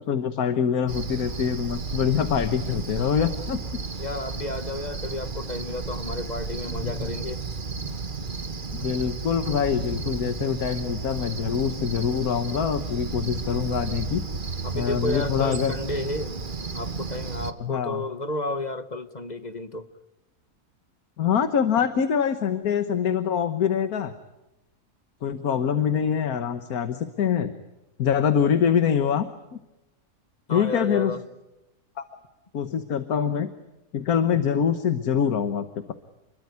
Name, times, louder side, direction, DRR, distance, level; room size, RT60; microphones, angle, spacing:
voice 1, 0.0-3.6 6.8-7.1 8.7-14.2 14.7-15.7 17.6-18.0 21.2-24.1 25.2-27.5 28.0-29.6 30.5-31.2 32.0-32.1 32.5-33.5 33.9-35.9, left 7 dB, 75° left, 10 dB, 1.7 m, -24 dB
Cricket, 0.9-17.5, right 4 dB, 35° right, 1.4 m, -33 dB
voice 2, 4.0-7.4 14.6-16.4 16.7-19.9 30.5-31.2 34.3-34.4, left 2 dB, 30° left, 11 dB, 1.2 m, -32 dB
28.5 x 22.0 x 9.5 m, 0.96 s
omnidirectional pair, 1.6 m